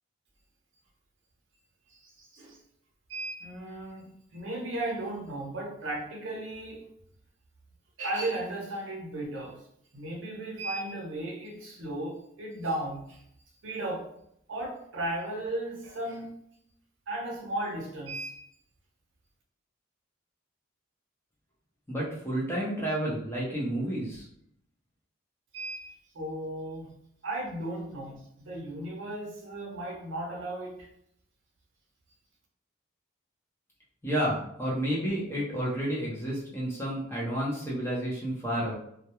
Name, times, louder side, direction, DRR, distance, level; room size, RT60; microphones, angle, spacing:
voice 1, 1.9-2.6 3.1-6.9 8.0-9.6 9.9-13.2 13.6-14.1 14.5-16.4 17.1-18.4 25.5-26.9 27.2-30.9, right 1 dB, 65° right, 0.7 m, -35 dB
voice 2, 21.9-24.2 34.0-38.8, equal, 10° left, 0.6 m, -30 dB
2.3 x 2.1 x 2.9 m
head